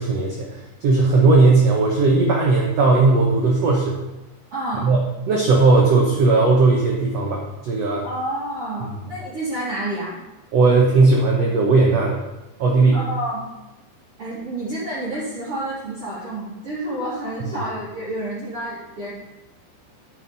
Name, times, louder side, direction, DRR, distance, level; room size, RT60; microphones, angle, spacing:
voice 1, 0.0-4.0 4.8-5.0 5.3-8.0 10.5-12.2 12.6-13.0, right 3 dB, 90° right, -2 dB, 1.4 m, -17 dB
voice 2, 4.5-4.9 8.0-10.2 12.9-13.5 14.2-19.1, right 1 dB, 35° right, -10 dB, 2.9 m, -29 dB
11.0 x 8.0 x 4.1 m, 0.98 s
omnidirectional pair, 4.9 m